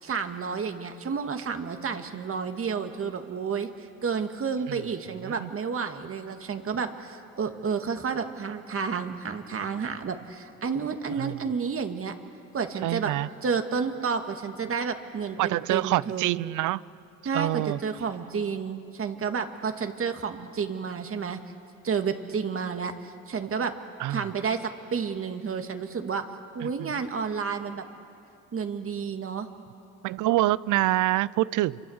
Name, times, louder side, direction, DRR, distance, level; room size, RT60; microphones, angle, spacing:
voice 1, 0.0-12.1 12.5-13.1 13.4-16.3 17.3-21.4 21.8-23.7 24.1-26.3 26.5-27.8 28.5-29.5, right 6 dB, 45° right, 6 dB, 2.0 m, -31 dB
voice 2, 12.8-13.3 15.4-16.8 17.3-17.8 24.0-24.3 26.6-27.0 30.0-31.8, right 16 dB, 85° right, 20 dB, 0.6 m, -26 dB
27.5 x 24.5 x 8.0 m, 2.6 s
cardioid pair, 90°, 30 cm